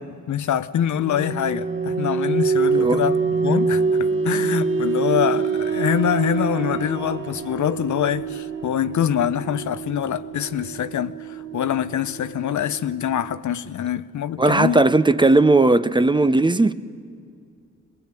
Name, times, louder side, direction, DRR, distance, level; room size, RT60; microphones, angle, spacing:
voice 1, 0.3-14.8, left 10 dB, 70° left, 0.8 m, -25 dB
sound 1, 0.8-13.4, right 4 dB, 40° right, 1.3 m, -25 dB
voice 2, 14.4-16.7, right 2 dB, 15° right, 0.7 m, -17 dB
22.5 x 20.0 x 9.0 m
cardioid pair, 60°, 31 cm